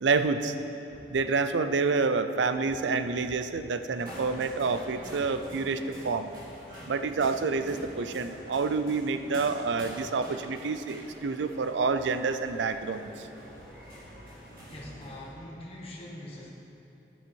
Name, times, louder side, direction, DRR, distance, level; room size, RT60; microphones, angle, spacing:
voice 1, 0.0-0.5 1.1-6.3 6.9-13.3, right 4 dB, 85° right, 10 dB, 0.5 m, -28 dB
sound 1, 4.0-15.3, equal, 50° right, 2.0 m, -46 dB
voice 2, 14.7-16.5, left 1 dB, 30° left, -3 dB, 1.2 m, -43 dB
11.5 x 7.0 x 4.7 m, 2.9 s
head